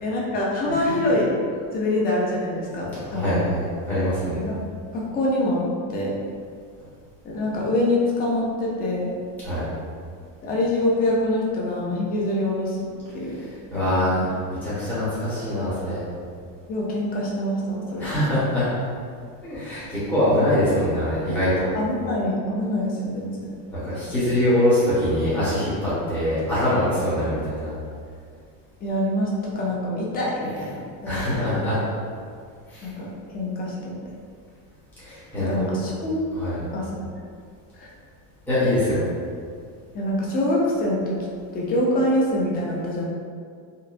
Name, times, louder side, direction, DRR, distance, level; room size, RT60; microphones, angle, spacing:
voice 1, 0.0-1.3 1.7-3.4 4.3-4.6 4.9-6.2 7.2-9.1 10.4-13.4 14.0-14.3 16.7-18.2 21.7-23.4 28.8-31.6 32.8-34.0 35.4-36.3 36.7-37.0 37.8-37.9 39.9-41.2 41.5-43.1, left 1 dB, 20° left, -4 dB, 0.4 m, -25 dB
voice 2, 2.9-4.4 9.4-9.7 13.3-16.0 18.0-18.7 19.4-21.7 23.7-27.7 31.0-31.8 32.7-32.9 35.0-35.7 36.3-36.6 38.5-39.1, left 1 dB, 5° left, -13 dB, 1.0 m, -24 dB
2.8 x 2.1 x 2.5 m, 2.1 s
supercardioid pair, 110°, 49 cm